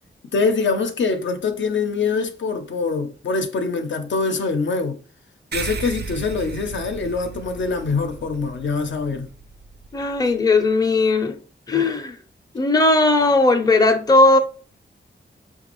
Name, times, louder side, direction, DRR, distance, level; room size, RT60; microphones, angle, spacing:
voice 1, 0.3-5.0 5.5-9.3, left 4 dB, 70° left, 0.5 m, -24 dB
sound 1, 5.5-10.4, right 5 dB, 55° right, 0.5 m, -35 dB
voice 2, 9.9-11.4 11.7-12.2 12.5-14.4, left 2 dB, 20° left, 0.5 m, -17 dB
5.0 x 2.3 x 2.9 m
wide cardioid pair, 115°, 20 cm